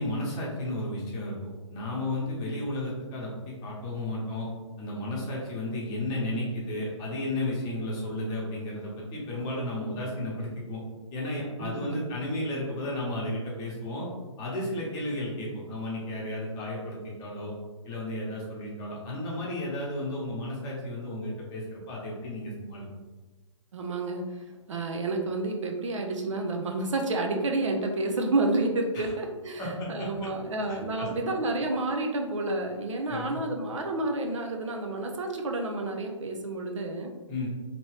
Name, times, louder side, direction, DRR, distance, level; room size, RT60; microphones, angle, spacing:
voice 1, 0.0-1.3 1.7-4.5 4.8-10.8 11.1-14.1 14.4-17.5 17.8-22.8 28.9-29.1 29.6-30.1 30.6-31.1 33.1-33.4 37.3-37.5, left 1 dB, 25° left, -4 dB, 1.0 m, -33 dB
voice 2, 11.6-12.0 23.7-24.3 24.7-37.1, right 2 dB, 70° right, 3 dB, 0.6 m, -30 dB
2.9 x 2.6 x 3.2 m, 1.3 s
figure-of-eight pair, 130°, 17 cm